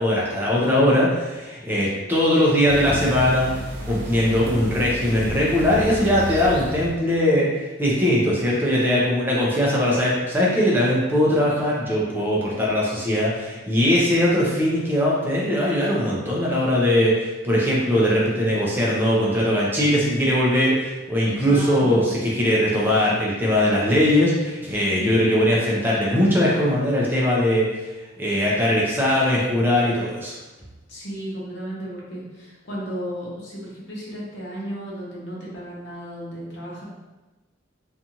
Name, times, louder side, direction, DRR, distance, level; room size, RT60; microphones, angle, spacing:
voice 1, 0.0-3.5 3.8-27.7 28.2-30.3, left 1 dB, 10° right, -5 dB, 0.5 m, -20 dB
sound 1, 2.7-7.0, left 1 dB, 60° right, 0.5 m, -32 dB
voice 2, 21.3-22.1 24.9-25.3 30.9-36.8, equal, 65° left, -6 dB, 0.8 m, -34 dB
2.6 x 2.4 x 2.8 m, 1.1 s
head